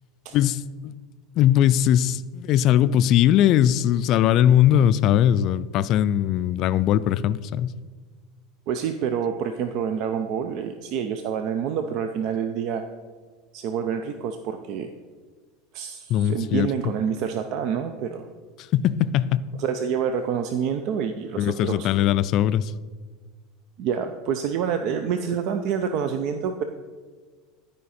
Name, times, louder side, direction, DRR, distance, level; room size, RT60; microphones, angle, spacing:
voice 1, 0.3-0.9 1.4-7.7 16.1-16.7 18.7-19.4 21.4-22.7, left 11 dB, 50° left, 16 dB, 0.3 m, -20 dB
voice 2, 8.7-12.8 13.5-14.9 15.7-18.3 19.6-21.9 23.8-26.6, right 7 dB, 60° right, 7 dB, 0.5 m, -27 dB
12.0 x 5.1 x 4.2 m, 1.5 s
supercardioid pair, 110°, 0 cm